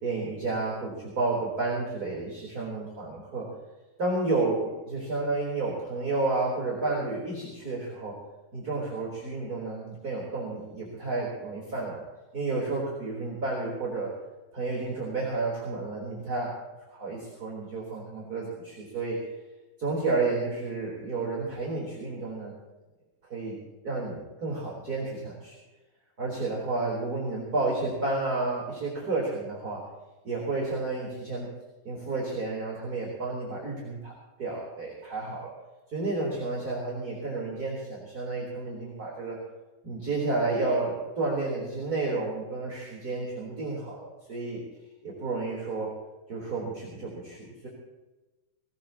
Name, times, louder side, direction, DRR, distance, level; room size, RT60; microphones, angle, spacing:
voice 1, 0.0-3.5 4.0-8.2 8.5-12.0 12.3-14.1 14.5-16.6 16.9-19.2 19.8-22.5 23.3-23.6 23.8-25.6 26.2-29.8 30.2-31.5 31.8-34.1 34.4-35.5 35.9-39.4 39.8-44.6 45.0-45.9 46.3-47.7, right 3 dB, 20° right, -4 dB, 3.7 m, -31 dB
20.5 x 19.0 x 3.0 m, 1.1 s
omnidirectional pair, 5.3 m